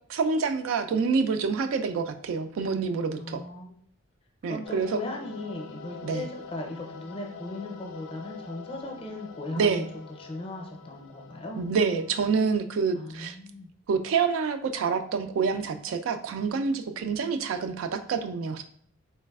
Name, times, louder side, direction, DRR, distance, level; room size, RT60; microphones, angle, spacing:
voice 1, 0.1-3.4 4.4-5.0 6.0-6.3 9.6-9.9 11.6-13.4 13.9-18.6, right 5 dB, 75° right, 9 dB, 0.3 m, -27 dB
voice 2, 3.2-3.8 4.5-9.8 10.2-11.6 12.9-13.7, left 2 dB, 25° left, 1 dB, 0.5 m, -38 dB
sound 1, 4.6-12.6, left 5 dB, 90° left, 0.4 m, -45 dB
3.9 x 3.2 x 2.2 m, 0.62 s
head